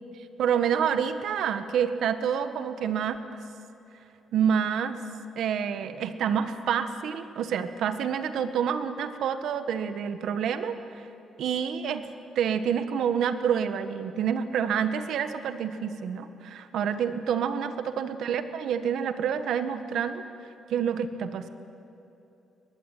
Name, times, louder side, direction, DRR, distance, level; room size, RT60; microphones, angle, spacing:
voice 1, 0.4-3.4 4.3-5.0 5.4-11.1 11.4-12.0 12.3-20.2 20.7-21.5, right 8 dB, 75° right, 10 dB, 1.5 m, -28 dB
23.5 x 20.5 x 9.3 m, 2.9 s
cardioid pair, 90°, 0 cm